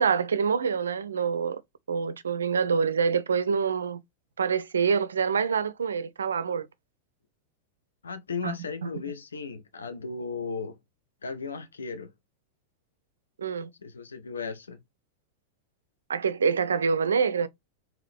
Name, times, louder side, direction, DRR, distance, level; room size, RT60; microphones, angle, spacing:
voice 1, 0.0-1.6 1.9-4.0 4.4-6.7 8.4-8.5 8.8-8.9 13.4-13.7 16.1-17.5, right 6 dB, 70° right, 0.4 m, -26 dB
voice 2, 8.0-10.8 11.2-12.1 13.8-14.8, left 5 dB, 70° left, 0.7 m, -35 dB
3.7 x 3.0 x 3.2 m
figure-of-eight pair, 90°, 0 cm